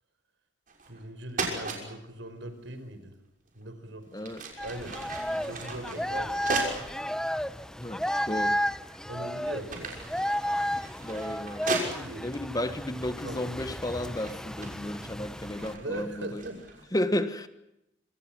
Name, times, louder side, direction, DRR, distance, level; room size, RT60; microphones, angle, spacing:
sound 1, 0.7-1.0 1.3-1.8 3.5-3.6 4.1-6.9 7.6-7.7 8.4-8.9 9.2-12.4 13.2-13.5 13.8-16.8, right 3 dB, 45° right, 6.1 m, -37 dB
voice 1, 0.9-3.1 3.6-4.1 4.6-6.4 9.1-10.1 11.7-12.3 13.1-13.6 15.7-16.9, right 1 dB, 80° right, 9 dB, 5.1 m, -40 dB
sound 2, 4.6-15.7, equal, 5° left, 1.0 m, -33 dB
voice 2, 7.8-8.6 11.0-11.7 12.2-16.4 16.9-17.5, left 1 dB, 20° left, 11 dB, 1.4 m, -33 dB
27.0 x 25.5 x 6.1 m, 0.86 s
head